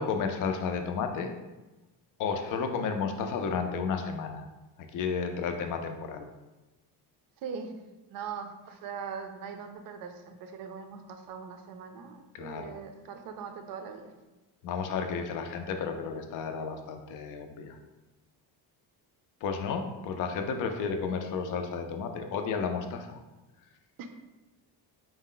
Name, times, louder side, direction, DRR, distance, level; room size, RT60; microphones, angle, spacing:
voice 1, 0.0-1.3 2.2-4.4 4.9-6.3 12.3-12.7 14.6-17.8 19.4-23.2, left 5 dB, 50° left, 5 dB, 0.4 m, -32 dB
voice 2, 7.4-7.7 8.1-14.1 24.0-24.1, right 6 dB, 55° right, 6 dB, 0.5 m, -41 dB
4.5 x 2.1 x 3.7 m, 1.1 s
cardioid pair, 175°, 42 cm